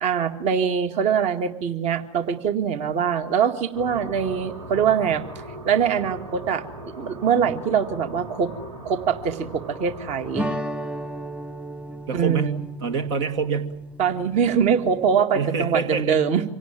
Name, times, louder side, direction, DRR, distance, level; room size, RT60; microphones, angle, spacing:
voice 1, 0.0-6.6 7.0-8.5 8.8-10.5 12.1-12.6 14.0-16.4, right 7 dB, 45° right, 8 dB, 2.1 m, -23 dB
sound 1, 3.7-10.5, right 1 dB, 80° right, 4.4 m, -39 dB
sound 2, 10.3-15.2, right 1 dB, 5° right, 1.3 m, -34 dB
voice 2, 12.1-13.8 15.3-16.2, right 6 dB, 65° right, 8 dB, 2.0 m, -26 dB
26.0 x 17.5 x 9.2 m, 0.86 s
figure-of-eight pair, 85°, 16 cm